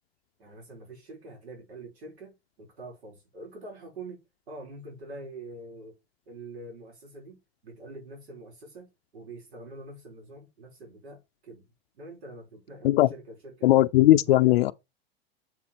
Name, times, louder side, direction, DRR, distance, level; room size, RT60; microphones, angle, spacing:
voice 1, 0.4-6.0 6.3-11.7 11.9-13.7 14.1-14.7, right 2 dB, 85° right, 4.3 m, -45 dB
voice 2, 13.6-14.7, left 15 dB, 70° left, 0.5 m, -18 dB
7.3 x 4.3 x 4.2 m
supercardioid pair, 145°, 32 cm